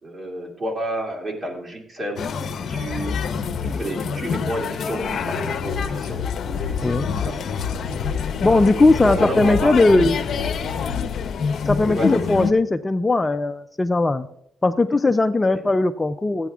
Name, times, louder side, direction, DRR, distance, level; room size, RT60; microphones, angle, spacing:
voice 1, 0.0-2.3 2.7-3.2 3.6-6.2 6.6-7.4 9.0-10.1 11.8-12.2 15.4-15.6, right 1 dB, 35° right, 2 dB, 2.4 m, -30 dB
sound 1, 2.2-12.5, left 6 dB, 55° left, 0.9 m, -27 dB
sound 2, 5.6-11.1, left 7 dB, 85° left, 0.6 m, -30 dB
voice 2, 8.4-10.2 11.6-14.3 14.6-16.5, left 2 dB, 20° left, 8 dB, 0.5 m, -18 dB
14.0 x 9.1 x 3.6 m, 0.72 s
cardioid pair, 90°, 0 cm